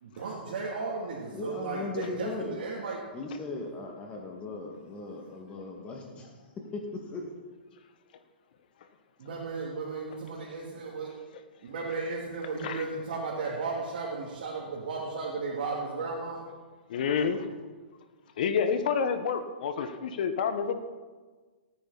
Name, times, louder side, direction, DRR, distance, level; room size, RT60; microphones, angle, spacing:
voice 1, 0.0-3.0 9.2-11.1 11.6-16.4, right 4 dB, 65° right, -4 dB, 2.7 m, -35 dB
voice 2, 1.3-2.6 3.1-6.4 6.7-7.2, left 3 dB, 20° left, 0 dB, 2.0 m, -38 dB
voice 3, 16.9-17.4 18.4-20.7, left 6 dB, 60° left, 9 dB, 1.3 m, -28 dB
18.5 x 9.0 x 4.1 m, 1.4 s
hypercardioid pair, 125°, 5 cm